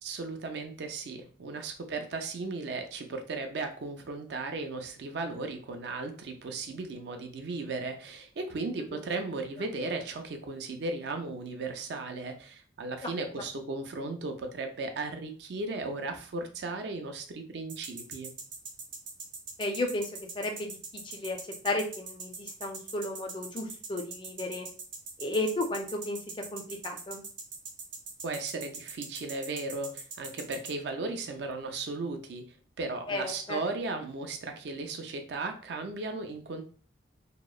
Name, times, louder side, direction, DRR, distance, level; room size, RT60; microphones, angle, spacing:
voice 1, 0.0-18.3 28.2-32.5 32.8-36.6, right 3 dB, 65° right, 5 dB, 0.4 m, -36 dB
voice 2, 8.9-9.3 13.0-13.1 19.6-20.8 21.0-21.4 21.6-24.7 25.2-27.2 33.1-33.6, left 2 dB, 25° left, 4 dB, 0.3 m, -34 dB
sound 1, 17.7-30.7, right 4 dB, 90° right, 0.7 m, -41 dB
2.8 x 2.0 x 2.3 m, 0.43 s
head